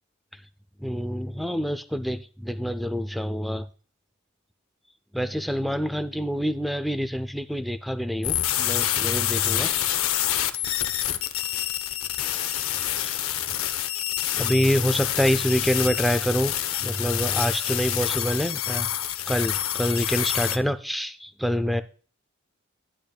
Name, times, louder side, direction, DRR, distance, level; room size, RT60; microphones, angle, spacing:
voice 1, 0.8-3.7 5.1-9.7 13.0-13.2 14.4-16.5 16.8-18.9 19.3-21.8, equal, ahead, 10 dB, 0.3 m, -26 dB
sound 1, 8.2-20.6, left 12 dB, 65° left, 0.6 m, -27 dB
10.0 x 10.0 x 2.2 m, 0.39 s
head